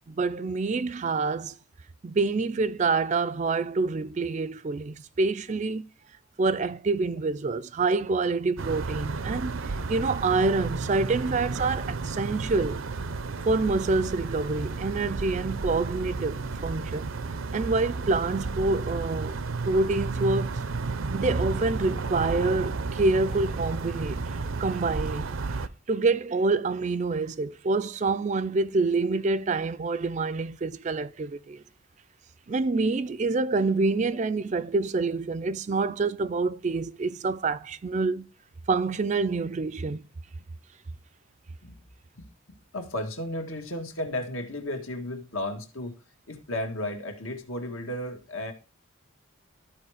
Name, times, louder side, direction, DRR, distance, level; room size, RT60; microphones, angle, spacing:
voice 1, 0.1-1.6 2.0-5.8 6.4-12.8 13.5-17.1 17.5-19.4 19.7-20.6 21.1-24.2 24.6-25.6 25.9-31.6 32.5-38.3 38.7-40.0, right 3 dB, 35° right, 0.3 m, -27 dB
sound 1, 8.6-25.7, right 3 dB, 75° right, 0.6 m, -32 dB
voice 2, 42.2-46.0 46.3-48.5, left 1 dB, 80° left, 1.8 m, -34 dB
13.0 x 4.5 x 4.9 m
head